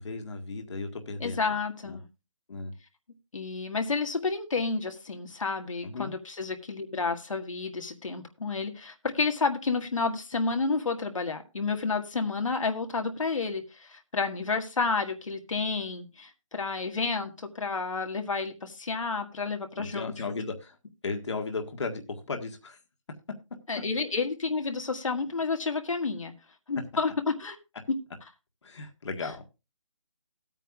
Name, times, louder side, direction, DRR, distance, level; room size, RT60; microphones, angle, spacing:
voice 1, 0.0-1.4 1.8-2.0 2.5-2.7 5.8-6.1 19.8-20.8 21.0-22.8 28.6-29.4, left 3 dB, 60° left, 4 dB, 1.7 m, -35 dB
voice 2, 1.2-2.0 3.3-20.1 23.7-26.3 26.7-27.6 29.2-29.3, left 4 dB, 75° left, 4 dB, 1.9 m, -30 dB
17.5 x 9.0 x 2.4 m, 0.26 s
hypercardioid pair, 170°, 17 cm